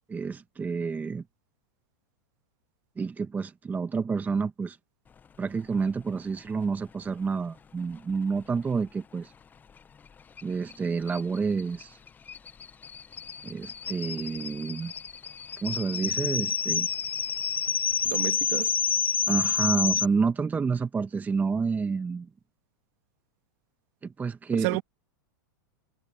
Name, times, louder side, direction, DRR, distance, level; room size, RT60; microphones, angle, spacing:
voice 1, 0.1-1.2 3.0-4.8 5.4-9.3 10.4-12.0 13.4-14.9 15.6-16.9 19.3-22.3 24.0-24.8, right 5 dB, 15° right, 1.3 m, -29 dB
sound 1, 10.4-10.5 10.7-10.8 11.1-20.0, left 6 dB, 15° left, 0.5 m, -29 dB
voice 2, 18.0-18.7 24.5-24.8, right 25 dB, 50° right, 2.5 m, -30 dB
hypercardioid pair, 120°, 11 cm